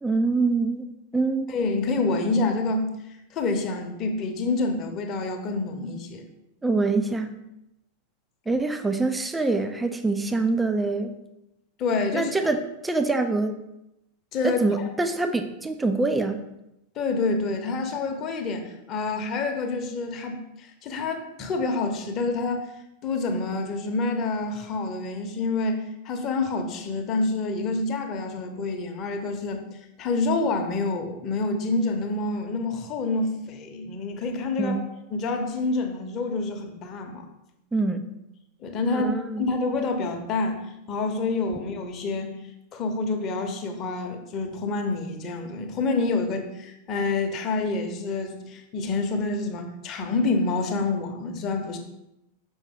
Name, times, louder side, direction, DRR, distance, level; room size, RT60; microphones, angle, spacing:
voice 1, 0.0-1.5 6.6-7.4 8.5-11.1 12.1-13.6 14.4-16.4 34.6-34.8 37.7-38.0 38.9-39.5, right 3 dB, 10° right, 7 dB, 0.5 m, -25 dB
voice 2, 1.5-2.9 3.3-6.2 11.8-12.3 14.3-14.9 16.9-22.7 23.0-29.7 30.0-34.8 35.1-37.2 38.6-39.1 39.4-42.3 42.7-51.8, left 3 dB, 35° left, 4 dB, 1.0 m, -27 dB
6.2 x 5.3 x 3.9 m, 0.88 s
figure-of-eight pair, 90°, 0 cm